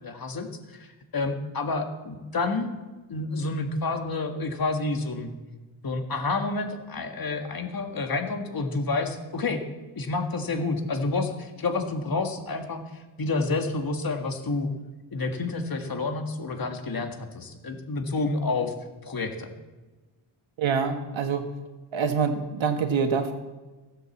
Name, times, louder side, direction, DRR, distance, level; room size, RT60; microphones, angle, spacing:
voice 1, 0.0-2.7 3.1-5.3 5.8-9.6 10.0-14.7 15.1-18.7 19.0-19.5, left 3 dB, 45° left, 5 dB, 1.8 m, -29 dB
voice 2, 20.6-21.5 21.9-23.3, right 6 dB, 75° right, 6 dB, 1.6 m, -25 dB
16.0 x 7.9 x 7.2 m, 1.2 s
wide cardioid pair, 105°, 47 cm